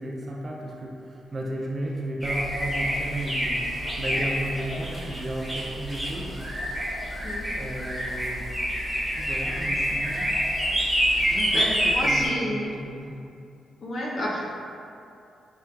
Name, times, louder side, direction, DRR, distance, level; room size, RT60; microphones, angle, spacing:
voice 1, 0.0-6.4 6.7-7.1 7.5-8.5 8.9-10.3 11.2-13.2, right 1 dB, 25° right, -2 dB, 0.3 m, -34 dB
sound 1, 2.2-12.3, equal, 5° left, 0.7 m, -27 dB
voice 2, 11.1-12.7 13.8-14.4, left 1 dB, 45° left, -4 dB, 0.5 m, -31 dB
4.3 x 2.3 x 2.2 m, 2.5 s
wide cardioid pair, 150°, 0 cm